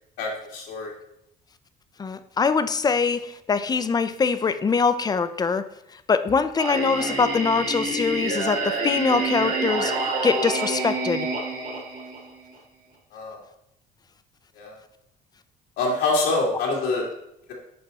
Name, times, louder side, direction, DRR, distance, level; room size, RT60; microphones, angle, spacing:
voice 1, 0.2-0.9 13.1-13.4 14.6-14.8 15.8-17.1, left 3 dB, 90° left, -2 dB, 2.0 m, -25 dB
voice 2, 2.0-5.7 6.1-11.3, left 5 dB, 25° left, 12 dB, 0.4 m, -23 dB
Singing, 6.6-12.5, right 3 dB, 55° right, 2.0 m, -28 dB
5.8 x 5.4 x 4.0 m, 0.79 s
cardioid pair, 110°, 17 cm